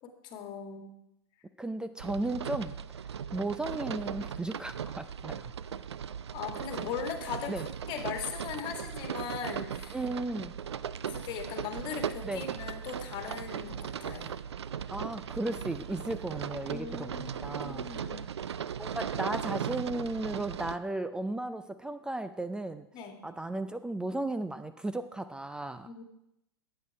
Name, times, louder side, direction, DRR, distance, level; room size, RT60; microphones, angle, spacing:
voice 1, 0.0-1.0 6.3-7.5 7.9-10.0 11.1-14.3 15.5-15.6 16.7-18.3 22.9-23.2 25.8-26.0, left 7 dB, 35° left, 4 dB, 1.9 m, -39 dB
voice 2, 1.6-2.7 3.3-5.5 7.5-7.6 9.9-10.5 12.2-12.5 14.9-17.9 18.8-22.9 23.2-26.0, right 2 dB, 5° right, 10 dB, 0.4 m, -35 dB
sound 1, 2.0-20.8, right 8 dB, 70° right, 0.5 m, -38 dB
12.0 x 8.7 x 4.8 m, 0.84 s
figure-of-eight pair, 105°, 14 cm